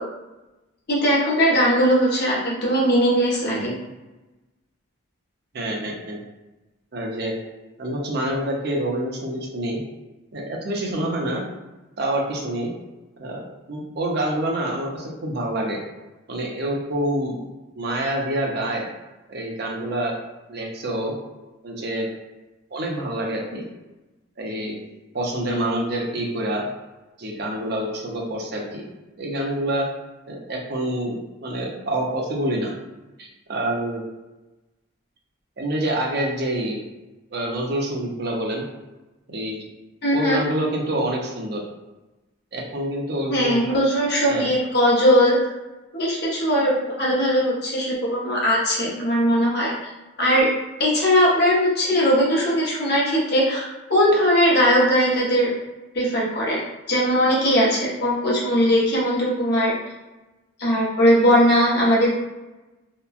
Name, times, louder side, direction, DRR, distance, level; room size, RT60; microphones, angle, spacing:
voice 1, 0.9-3.7 40.0-40.4 43.3-45.4 45.9-49.9 50.2-50.5 50.8-55.5 55.9-56.6 56.9-59.7 60.6-62.1, equal, 50° left, -5 dB, 0.8 m, -19 dB
voice 2, 5.5-6.2 6.9-7.4 7.8-9.8 10.3-11.4 12.0-12.7 13.2-15.8 16.3-17.4 17.8-18.9 19.3-20.1 20.5-21.1 21.6-22.1 22.7-23.6 24.4-24.8 25.1-26.7 27.2-28.9 29.2-29.9 30.3-32.7 33.2-34.0 35.6-36.8 37.3-38.6 39.3-39.6 40.1-41.6 42.5-43.6 44.3-44.4, right 1 dB, 50° right, -1 dB, 0.5 m, -27 dB
2.8 x 2.2 x 2.4 m, 1.1 s
head